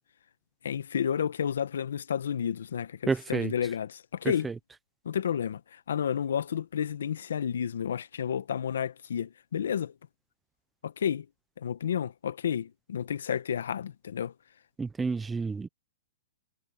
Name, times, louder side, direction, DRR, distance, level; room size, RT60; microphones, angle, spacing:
voice 1, 0.6-4.5 5.0-9.9 10.8-11.3 11.6-14.3, left 8 dB, 75° left, 1.3 m, -31 dB
voice 2, 3.1-3.5 4.4-4.5 14.8-15.7, right 4 dB, 10° right, 0.8 m, -29 dB
hypercardioid pair, 145°, 0 cm